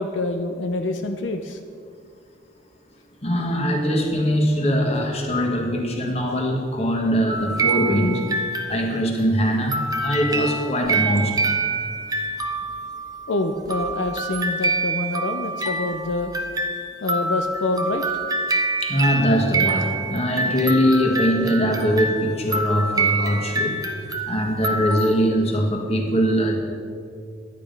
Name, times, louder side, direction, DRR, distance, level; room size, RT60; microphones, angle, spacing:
voice 1, 0.0-1.6 13.3-16.3 17.0-18.0 24.1-24.3, left 2 dB, 80° left, 6 dB, 0.6 m, -26 dB
voice 2, 3.2-8.2 8.7-11.5 18.8-23.7 24.0-26.6, equal, 35° left, 1 dB, 1.6 m, -22 dB
sound 1, 7.3-9.2 9.7-25.3, right 3 dB, 20° right, 0.7 m, -26 dB
11.0 x 9.2 x 5.3 m, 2.2 s
head